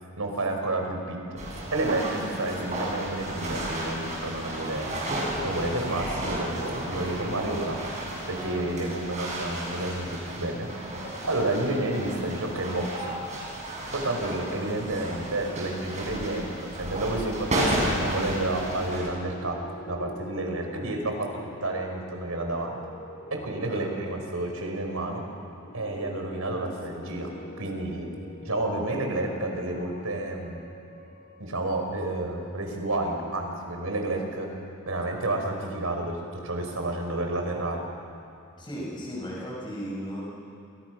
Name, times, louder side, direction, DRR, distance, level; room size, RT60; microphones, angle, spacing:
voice 1, 0.2-1.4 1.7-4.9 5.4-7.8 8.3-10.7 11.2-13.1 13.9-19.6 19.9-21.3 21.6-22.8 23.3-25.2 25.7-28.1 28.4-30.6 31.4-34.5 34.9-36.2 36.4-37.8, right 2 dB, 80° right, 3 dB, 4.8 m, -30 dB
sound 1, 1.4-19.1, right 1 dB, 35° right, 7.2 m, -33 dB
sound 2, 18.1-34.4, left 1 dB, 45° left, 2.5 m, -46 dB
voice 2, 38.6-40.2, equal, 20° left, -4 dB, 6.2 m, -35 dB
29.0 x 27.5 x 6.2 m, 2.6 s
head